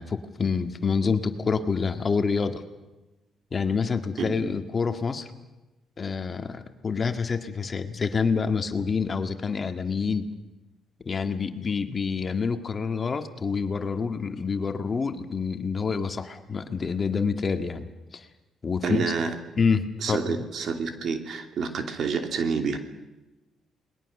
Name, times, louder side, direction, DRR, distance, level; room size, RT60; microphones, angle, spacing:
voice 1, 0.0-2.6 3.5-5.3 6.0-10.3 11.0-18.3 18.6-19.0 19.6-20.4, left 5 dB, 35° left, 8 dB, 1.8 m, -27 dB
voice 2, 18.8-19.3 20.0-22.8, right 5 dB, 60° right, 6 dB, 2.9 m, -28 dB
29.0 x 21.0 x 6.7 m, 1.0 s
cardioid pair, 90°, 0 cm